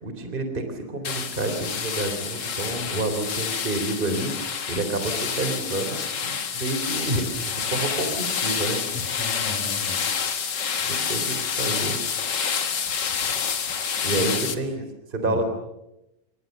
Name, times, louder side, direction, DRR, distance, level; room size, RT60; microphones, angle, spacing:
voice 1, 0.0-4.3 4.7-8.8 10.8-12.0 14.0-14.8 15.1-15.5, right 2 dB, 15° right, 7 dB, 3.6 m, -29 dB
sound 1, 1.0-14.5, left 7 dB, 45° left, 1.4 m, -28 dB
voice 2, 2.7-3.2 8.9-10.0 14.1-14.4 15.2-15.4, left 3 dB, 65° left, -2 dB, 7.7 m, -35 dB
29.0 x 25.0 x 6.8 m, 0.88 s
omnidirectional pair, 4.0 m